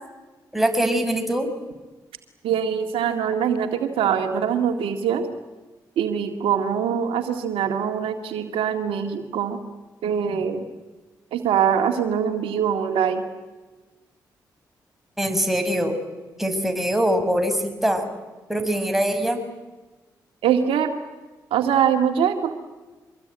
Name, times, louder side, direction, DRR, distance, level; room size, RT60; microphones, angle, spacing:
voice 1, 0.5-1.5 15.2-16.0 16.4-18.1 18.5-19.4, equal, 5° right, 5 dB, 6.1 m, -23 dB
voice 2, 2.4-5.3 6.0-9.6 10.0-10.6 11.3-13.2 20.4-20.9 21.5-22.5, right 8 dB, 80° right, 6 dB, 2.1 m, -23 dB
25.0 x 21.5 x 9.2 m, 1.2 s
hypercardioid pair, 45°, 9 cm